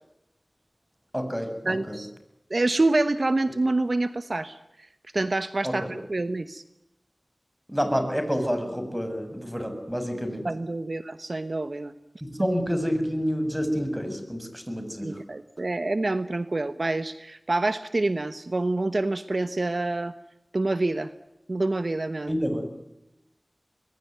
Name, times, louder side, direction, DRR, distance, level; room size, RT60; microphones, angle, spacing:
voice 1, 1.1-2.0 5.6-5.7 7.7-10.4 12.2-15.2 22.3-22.7, equal, 5° right, 7 dB, 7.0 m, -28 dB
voice 2, 1.6-2.1 2.5-4.6 5.1-6.6 10.4-11.9 12.4-12.5 15.0-20.1 20.5-21.1 21.5-22.4, right 2 dB, 60° right, 12 dB, 1.1 m, -27 dB
25.5 x 21.5 x 9.4 m, 0.88 s
wide cardioid pair, 55°, 0 cm